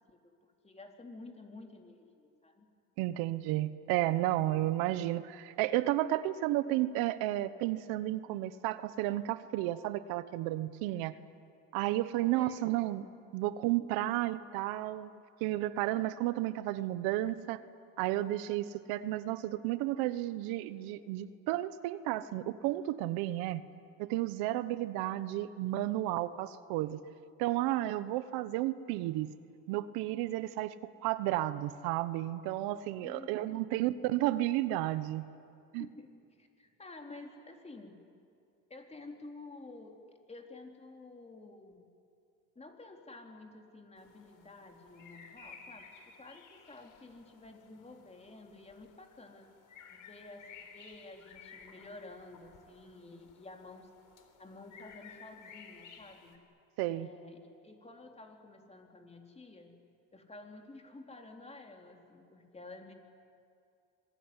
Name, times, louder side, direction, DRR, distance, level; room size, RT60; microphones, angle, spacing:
voice 1, 0.6-2.7 12.3-12.7 33.0-33.3 33.6-33.8 35.8-38.0 38.7-39.9 40.3-41.9 42.6-45.9 46.2-49.5 49.9-53.9 54.4-56.3 56.9-59.7 60.1-62.9, left 2 dB, 20° left, 2 dB, 4.1 m, -51 dB
voice 2, 3.0-11.2 11.7-13.0 13.3-17.6 18.0-23.6 24.0-27.0 27.4-29.3 29.7-30.7 31.0-35.3 35.7-35.9 56.8-57.1, right 15 dB, 80° right, 14 dB, 1.1 m, -32 dB
sound 1, 44.0-56.4, left 6 dB, 60° left, 4.0 m, -56 dB
26.0 x 21.5 x 9.9 m, 2.4 s
supercardioid pair, 100°, 35 cm